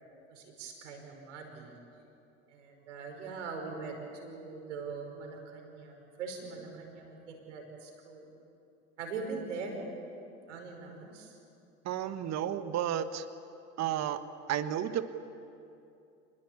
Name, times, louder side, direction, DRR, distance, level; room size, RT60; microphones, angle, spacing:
voice 1, 0.3-1.7 2.5-8.3 9.0-9.8 10.5-11.4, right 4 dB, 85° right, 2 dB, 5.3 m, -42 dB
voice 2, 11.8-13.2 13.8-14.2 14.5-15.1, right 10 dB, 50° right, 10 dB, 1.3 m, -32 dB
26.0 x 21.0 x 8.7 m, 2.7 s
hypercardioid pair, 75°, 35 cm